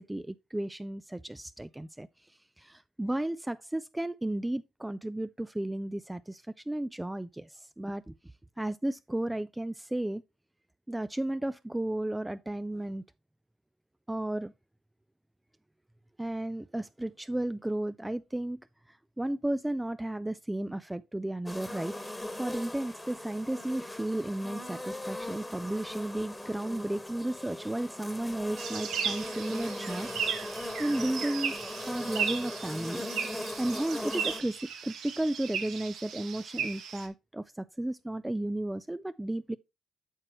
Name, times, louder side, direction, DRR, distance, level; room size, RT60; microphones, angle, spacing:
voice 1, 0.0-2.1 2.6-8.1 8.6-10.2 10.9-13.0 14.1-14.5 16.2-18.6 19.2-21.9 22.3-30.1 30.8-31.6 31.9-33.0 33.6-39.6, right 1 dB, 10° right, 0.3 m, -33 dB
sound 1, 21.5-34.4, left 1 dB, 10° left, 1.3 m, -40 dB
sound 2, 28.6-37.1, right 7 dB, 75° right, 1.3 m, -36 dB
8.9 x 6.1 x 3.0 m
supercardioid pair, 70°, 0 cm